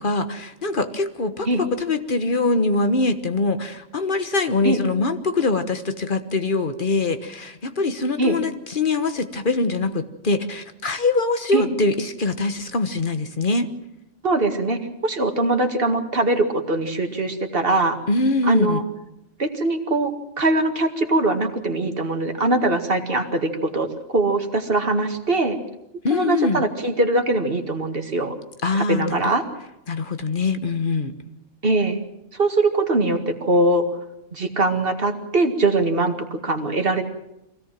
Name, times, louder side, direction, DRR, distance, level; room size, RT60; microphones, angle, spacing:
voice 1, 0.0-13.7 18.1-18.8 26.0-26.7 28.6-29.3 29.9-31.1, left 3 dB, 45° left, 9 dB, 1.4 m, -23 dB
voice 2, 14.2-18.0 18.4-18.8 19.4-20.1 20.4-25.6 26.1-28.3 28.7-29.4 31.6-32.0 32.3-33.9 34.3-37.0, right 2 dB, 50° right, 5 dB, 2.1 m, -22 dB
24.0 x 17.0 x 7.6 m, 0.89 s
omnidirectional pair, 1.3 m